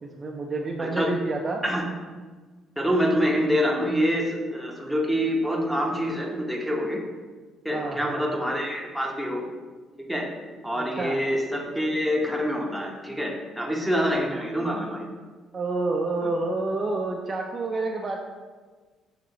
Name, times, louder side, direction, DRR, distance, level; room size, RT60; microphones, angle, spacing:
voice 1, 0.0-1.6 7.7-8.2 10.8-11.2 15.5-18.2, right 3 dB, 35° right, 1 dB, 0.4 m, -29 dB
voice 2, 2.8-7.0 7.6-9.5 10.0-10.3 10.6-15.1 16.2-16.3, equal, ahead, -1 dB, 0.8 m, -26 dB
6.0 x 2.9 x 2.9 m, 1.4 s
cardioid pair, 95°, 0 cm